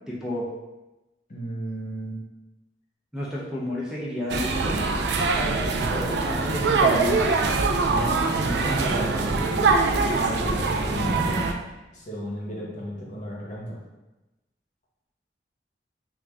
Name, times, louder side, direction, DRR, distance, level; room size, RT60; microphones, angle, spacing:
voice 1, 0.1-0.4 3.1-4.9 5.9-7.4, left 1 dB, 5° right, -6 dB, 0.4 m, -31 dB
voice 2, 1.3-2.2 5.7-6.0 7.9-11.4 11.9-13.8, equal, 45° left, -3 dB, 0.8 m, -33 dB
sound 1, 4.3-11.5, right 3 dB, 70° right, 0.4 m, -23 dB
3.4 x 2.4 x 3.4 m, 1.0 s
head